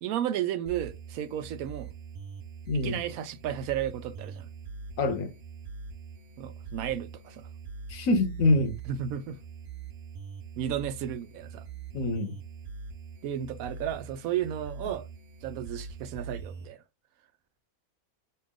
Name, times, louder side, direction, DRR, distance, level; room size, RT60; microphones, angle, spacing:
voice 1, 0.0-1.9 2.7-4.5 6.4-7.5 8.9-9.4 10.6-11.6 13.2-15.1 15.4-16.8, right 10 dB, 90° right, 1.0 m, -33 dB
sound 1, 0.7-16.7, right 6 dB, 60° right, 0.8 m, -43 dB
voice 2, 2.7-3.0 5.0-5.3 7.9-8.8 11.9-12.3, left 2 dB, 75° left, 1.2 m, -25 dB
5.6 x 2.4 x 3.5 m
omnidirectional pair, 1.4 m